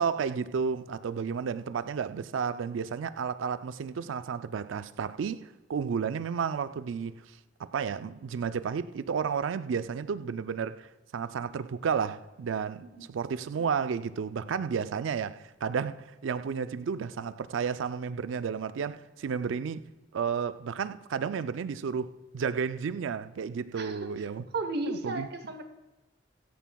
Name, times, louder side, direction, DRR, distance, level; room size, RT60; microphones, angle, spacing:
voice 1, 0.0-19.8 20.1-24.5 24.9-25.3, right 6 dB, 80° right, 0.4 m, -32 dB
voice 2, 23.8-24.1 24.5-25.6, right 2 dB, 55° right, 0.8 m, -34 dB
13.0 x 9.2 x 2.3 m
head